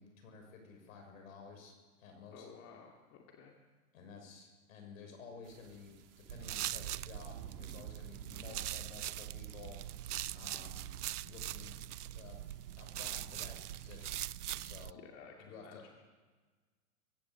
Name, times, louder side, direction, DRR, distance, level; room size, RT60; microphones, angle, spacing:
voice 1, 0.0-2.5 3.9-5.9 6.3-10.9 11.2-12.4 12.8-14.2 14.6-15.0 15.4-15.8, left 5 dB, 65° left, 4 dB, 6.5 m, -53 dB
voice 2, 2.3-3.5 14.9-15.9, left 6 dB, 35° left, 1 dB, 2.5 m, -54 dB
sound 1, 5.4-14.2, right 7 dB, 35° right, 2.5 m, -59 dB
sound 2, 6.3-14.9, right 12 dB, 85° right, 0.6 m, -42 dB
23.0 x 16.0 x 7.2 m, 1.4 s
hypercardioid pair, 110°, 45 cm